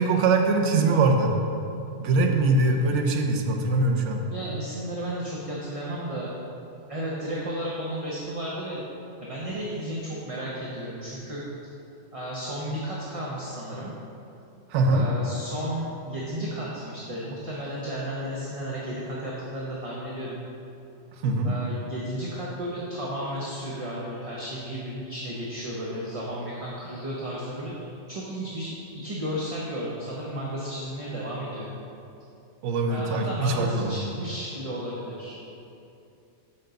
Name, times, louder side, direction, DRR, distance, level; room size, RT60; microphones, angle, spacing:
voice 1, 0.0-1.3 2.0-4.2 14.7-15.1 21.2-21.5 32.6-33.9, right 3 dB, 80° right, 3 dB, 1.0 m, -22 dB
voice 2, 4.3-6.3 6.9-8.8 9.2-11.4 12.1-13.9 14.9-20.4 21.4-31.7 32.9-35.4, equal, 35° right, -5 dB, 0.8 m, -33 dB
7.4 x 5.4 x 3.8 m, 2.7 s
omnidirectional pair, 1.2 m